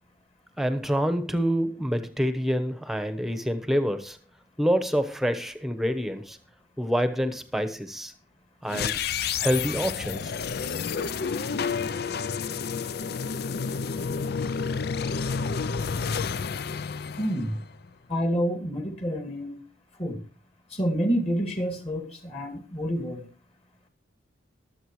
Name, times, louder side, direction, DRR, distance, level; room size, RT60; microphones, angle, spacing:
voice 1, 0.6-4.2 4.6-6.4 6.8-8.1 8.6-9.0 9.4-10.3, equal, ahead, 1.0 m, -27 dB
sound 1, 8.7-17.9, left 5 dB, 55° left, 0.4 m, -30 dB
voice 2, 17.2-17.6 18.1-19.6 20.0-20.2 20.7-23.2, equal, 30° left, 2.3 m, -28 dB
23.0 x 8.0 x 3.2 m
head